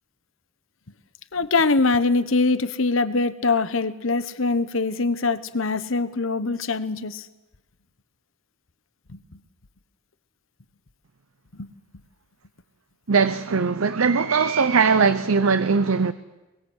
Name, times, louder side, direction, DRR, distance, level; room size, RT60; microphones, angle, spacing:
voice 1, 1.3-7.3 9.1-9.2 11.6-11.7, left 3 dB, 65° left, 1.2 m, -23 dB
voice 2, 13.1-16.1, right 5 dB, 80° right, 0.7 m, -20 dB
23.0 x 22.5 x 8.2 m
head